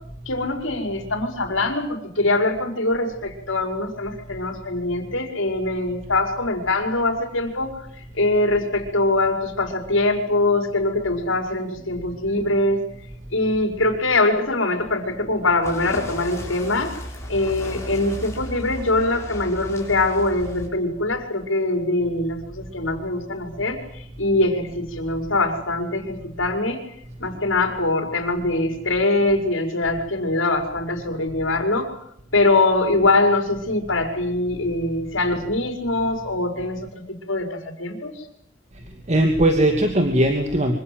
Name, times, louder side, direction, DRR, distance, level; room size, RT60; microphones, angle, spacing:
voice 1, 0.3-7.7 8.1-12.8 13.3-16.9 17.3-26.8 27.2-31.9 32.3-38.1, left 2 dB, 70° left, 5 dB, 5.3 m, -23 dB
sound 1, 15.6-20.7, left 1 dB, 15° left, 7.0 m, -35 dB
voice 2, 38.7-40.7, right 1 dB, 35° right, 5 dB, 2.6 m, -19 dB
26.0 x 25.5 x 7.9 m, 0.69 s
head